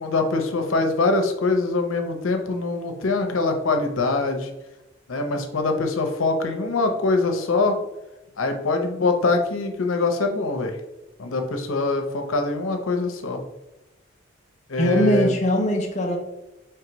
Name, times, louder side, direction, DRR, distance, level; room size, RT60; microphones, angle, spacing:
voice 1, 0.0-4.5 5.1-7.8 8.4-10.8 11.2-13.4 14.7-15.3, left 3 dB, 90° left, 5 dB, 0.7 m, -23 dB
voice 2, 14.8-16.2, left 1 dB, 35° left, 2 dB, 0.5 m, -21 dB
4.6 x 3.2 x 3.0 m, 0.97 s
head